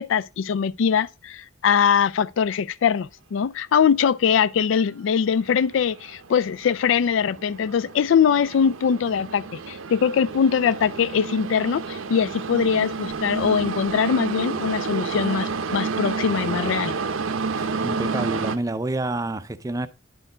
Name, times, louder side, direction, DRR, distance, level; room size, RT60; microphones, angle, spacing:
voice 1, 0.0-16.9, left 7 dB, 70° left, 0.3 m, -22 dB
sound 1, 4.8-4.9 5.7-18.6, right 4 dB, 90° right, 0.7 m, -30 dB
voice 2, 17.5-19.9, right 2 dB, 15° right, 0.4 m, -28 dB
10.0 x 4.4 x 3.8 m
head